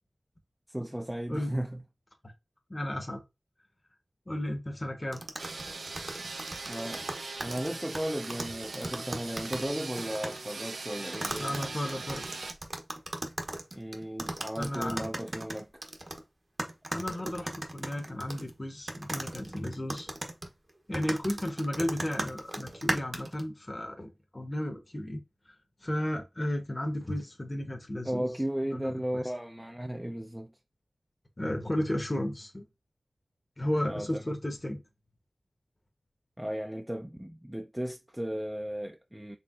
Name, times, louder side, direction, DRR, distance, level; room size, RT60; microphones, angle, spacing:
voice 1, 0.7-1.8 6.7-7.1 7.4-11.6 13.7-15.8 19.4-19.6 28.0-30.5 33.8-34.2 36.4-39.4, equal, 10° right, 0.4 m, -35 dB
voice 2, 1.3-1.6 2.7-3.2 4.3-5.2 11.4-12.2 14.6-15.1 16.9-20.1 20.9-25.2 25.5-25.6 25.8-28.3 28.7-29.2 31.4-32.6 33.6-34.8, left 1 dB, 30° left, 0.9 m, -34 dB
sound 1, 5.1-9.7 10.0-10.4 11.1-16.2 16.6-18.5 18.9-23.4, right 1 dB, 40° right, 0.8 m, -37 dB
sound 2, 5.4-12.5, right 3 dB, 85° right, 0.6 m, -40 dB
4.3 x 3.1 x 2.4 m
cardioid pair, 45°, 0 cm